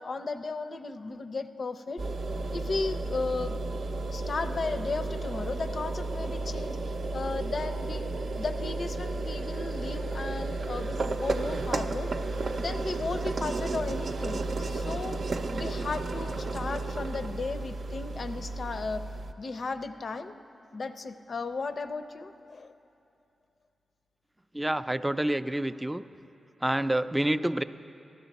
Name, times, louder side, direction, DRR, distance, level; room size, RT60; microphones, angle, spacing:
voice 1, 0.0-2.0 2.5-3.6 4.1-8.1 8.4-12.1 12.5-15.2 15.5-19.0 19.4-20.4 20.7-22.7, left 3 dB, 60° left, 10 dB, 0.5 m, -35 dB
sound 1, 2.0-19.3, right 2 dB, 70° right, 0.5 m, -33 dB
voice 2, 24.5-26.0 26.6-27.6, right 1 dB, 15° right, 12 dB, 0.3 m, -28 dB
14.5 x 12.0 x 4.1 m, 2.8 s
cardioid pair, 50°, 0 cm